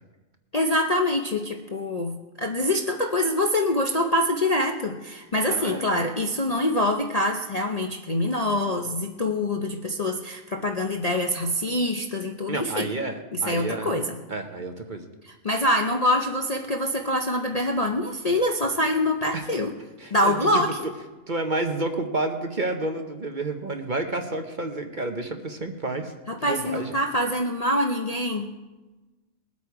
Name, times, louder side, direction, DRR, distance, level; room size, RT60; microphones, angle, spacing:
voice 1, 0.5-12.9 13.3-14.2 15.2-19.7 20.1-20.7 26.3-28.5, left 1 dB, 35° left, 1 dB, 0.7 m, -25 dB
voice 2, 5.5-6.1 12.5-13.9 14.3-15.1 19.3-19.5 20.0-20.7 21.3-26.1 26.4-27.0, right 2 dB, 40° right, 5 dB, 1.0 m, -30 dB
21.0 x 8.5 x 4.7 m, 1.1 s
omnidirectional pair, 1.5 m